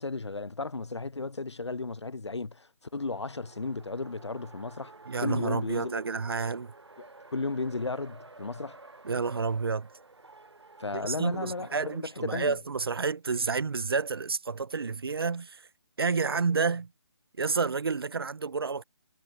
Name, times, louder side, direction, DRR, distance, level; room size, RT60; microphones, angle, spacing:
voice 1, 0.0-2.7 2.9-4.9 5.2-6.0 7.0-8.8 10.8-12.5, left 3 dB, 85° left, 0.5 m, -34 dB
Race car auto racing, 2.8-12.1, right 3 dB, 75° right, 1.7 m, -51 dB
voice 2, 5.1-6.7 9.0-9.9 10.9-15.6 16.0-16.9 17.4-18.8, right 4 dB, 60° right, 1.1 m, -30 dB
figure-of-eight pair, 145°, 14 cm